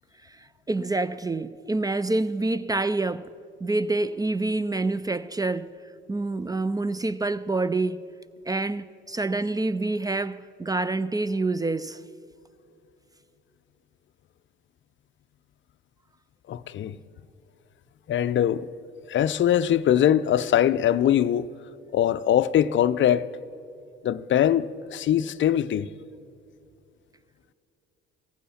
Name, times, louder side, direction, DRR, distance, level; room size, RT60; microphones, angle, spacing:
voice 1, 0.2-3.3 3.6-5.7 6.1-8.0 8.5-12.0, right 2 dB, 10° right, 0.3 m, -27 dB
voice 2, 16.5-17.0 18.1-18.7 19.1-21.5 21.9-23.3 24.0-25.9, left 10 dB, 35° left, 0.5 m, -22 dB
16.5 x 15.0 x 4.3 m
hypercardioid pair, 55°, 32 cm